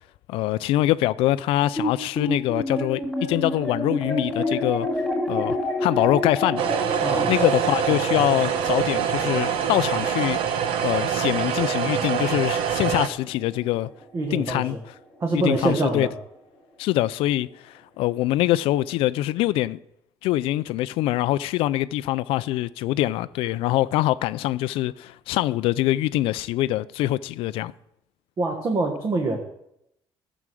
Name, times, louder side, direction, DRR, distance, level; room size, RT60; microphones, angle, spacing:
voice 1, 0.3-4.9 5.3-6.6 7.3-10.4 10.8-13.9 14.3-14.8 15.3-16.1 16.8-19.8 20.2-27.7, left 15 dB, 85° left, 0.4 m, -24 dB
sound 1, 1.8-14.4, left 1 dB, 5° left, 3.2 m, -30 dB
sound 2, 6.6-13.1, right 8 dB, 75° right, 1.1 m, -25 dB
voice 2, 7.0-7.3 14.1-14.7 15.2-16.1 28.4-29.4, right 2 dB, 30° right, 1.4 m, -25 dB
14.5 x 6.2 x 7.6 m
cardioid pair, 175°, 9 cm